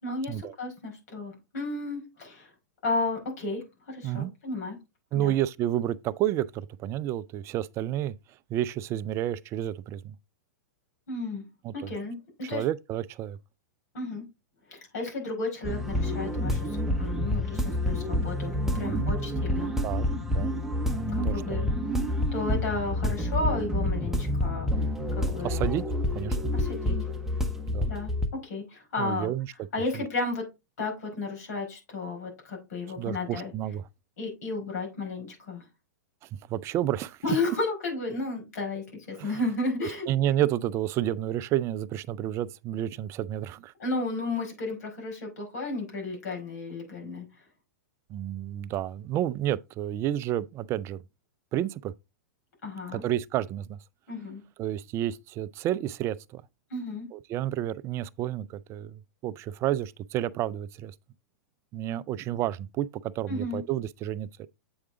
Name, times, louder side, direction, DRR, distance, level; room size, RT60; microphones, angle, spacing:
voice 1, 0.0-2.5 2.8-4.8 5.1-5.3 11.1-11.4 11.7-12.7 13.9-14.2 14.7-19.7 21.1-21.7 22.3-25.7 26.5-27.0 27.9-29.3 29.7-30.4 30.8-33.5 34.2-35.6 37.2-40.1 43.8-47.3 52.6-53.0 54.1-54.4 56.7-57.1 63.3-63.6, left 2 dB, 70° left, 4.8 m, -33 dB
voice 2, 5.1-8.2 8.5-10.2 11.6-11.9 12.5-13.4 18.7-19.1 19.8-20.5 21.2-21.6 25.4-25.8 26.1-26.5 27.7-27.9 29.0-29.5 33.0-33.8 36.5-37.2 39.2-39.4 40.1-43.7 48.1-51.0 51.5-51.9 52.9-53.8 54.6-56.4 57.1-60.9 61.7-64.5, right 12 dB, 30° right, 0.4 m, -30 dB
sound 1, 15.6-28.3, left 1 dB, 5° right, 0.8 m, -28 dB
7.9 x 4.7 x 3.7 m
hypercardioid pair, 130°, 9 cm